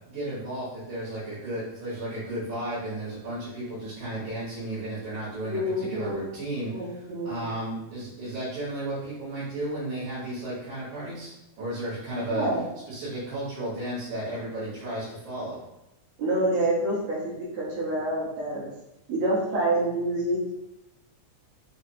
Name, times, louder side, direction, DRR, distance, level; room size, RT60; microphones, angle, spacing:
voice 1, 0.1-12.6 12.9-15.6, right 1 dB, 85° right, -11 dB, 3.0 m, -34 dB
voice 2, 5.5-6.3 6.7-7.6 12.3-12.6 16.2-18.7 19.1-20.4, right 1 dB, 65° right, -5 dB, 2.0 m, -27 dB
6.0 x 2.1 x 2.7 m, 0.89 s
omnidirectional pair, 3.4 m